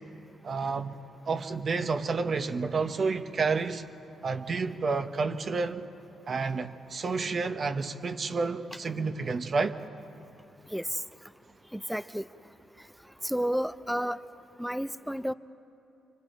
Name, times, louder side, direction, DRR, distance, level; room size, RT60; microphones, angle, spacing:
voice 1, 0.4-0.9 1.3-3.8 4.2-5.9 6.3-9.8, right 4 dB, 45° right, 7 dB, 1.0 m, -30 dB
voice 2, 11.7-12.3 13.2-14.2 14.6-15.3, equal, ahead, 12 dB, 0.6 m, -31 dB
28.5 x 24.0 x 4.5 m, 2.9 s
cardioid pair, 90°, 0 cm